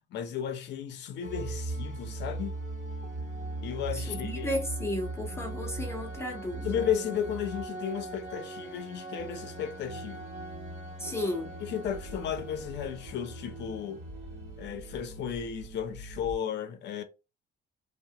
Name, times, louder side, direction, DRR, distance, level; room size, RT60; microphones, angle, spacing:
voice 1, 0.1-2.5 3.6-4.5 6.6-10.3 11.6-14.0 14.6-17.0, left 8 dB, 60° left, 0.6 m, -34 dB
sound 1, 1.2-16.3, right 2 dB, 35° right, 1.0 m, -39 dB
voice 2, 3.9-6.8 11.0-11.5, left 1 dB, 10° left, 0.6 m, -34 dB
2.8 x 2.1 x 2.8 m
cardioid pair, 130°, 21 cm